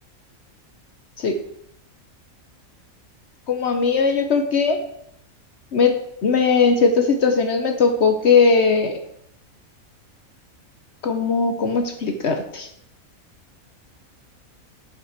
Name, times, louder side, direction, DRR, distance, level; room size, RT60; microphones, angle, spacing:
voice 1, 3.5-4.8 5.7-6.0 6.2-9.0 11.0-12.7, left 5 dB, 55° left, 6 dB, 1.0 m, -19 dB
6.5 x 5.2 x 5.9 m, 0.74 s
omnidirectional pair, 1.5 m